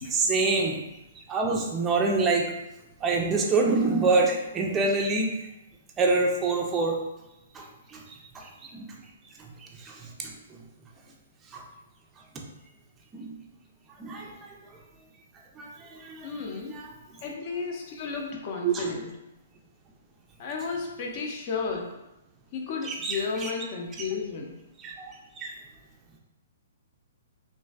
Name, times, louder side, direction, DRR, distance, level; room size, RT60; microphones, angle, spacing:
voice 1, 0.0-0.8 1.3-2.4 3.0-5.3 6.0-7.0 7.5-7.6 7.9-8.0 8.3-8.9 9.6-10.1 11.5-11.6 13.1-13.3 14.0-14.3 15.6-16.9 18.6-19.0 22.8-23.5 24.8-25.1 25.4-25.5, right 3 dB, 20° right, -1 dB, 0.4 m, -26 dB
voice 2, 16.2-16.8 17.2-19.1 20.4-21.9 22.5-24.6, left 5 dB, 40° left, 0 dB, 0.6 m, -33 dB
3.1 x 2.5 x 2.3 m, 0.93 s
figure-of-eight pair, 125°, 0 cm